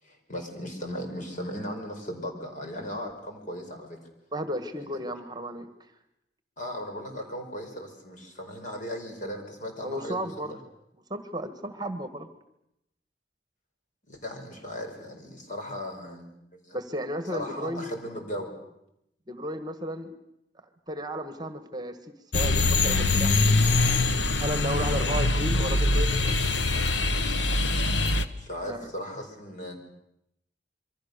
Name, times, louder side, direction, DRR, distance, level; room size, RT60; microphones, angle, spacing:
voice 1, 0.0-4.0 4.8-4.9 6.6-10.6 14.1-16.8 17.3-18.6 24.9-25.1 28.4-29.8, equal, 50° left, 3 dB, 5.2 m, -37 dB
voice 2, 4.3-5.7 9.8-10.5 11.1-12.3 16.7-17.9 19.3-20.1 20.9-22.0 22.3-23.4 24.4-26.4 28.7-28.9, equal, 25° right, 9 dB, 1.6 m, -33 dB
sound 1, 22.3-28.3, left 2 dB, 90° left, 1.4 m, -23 dB
27.0 x 23.5 x 6.8 m, 0.82 s
head